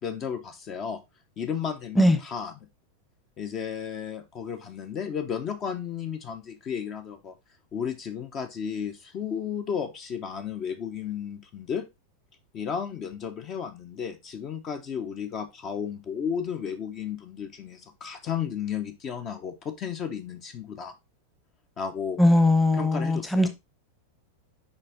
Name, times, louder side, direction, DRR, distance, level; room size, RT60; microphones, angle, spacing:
voice 1, 0.0-1.0 1.4-2.5 3.4-7.3 7.7-11.8 12.5-20.9 21.8-22.2 22.7-23.5, left 7 dB, 30° left, 0.8 m, -33 dB
voice 2, 22.2-23.5, left 1 dB, 5° left, 1.0 m, -20 dB
6.6 x 4.9 x 3.5 m
figure-of-eight pair, 90°, 0 cm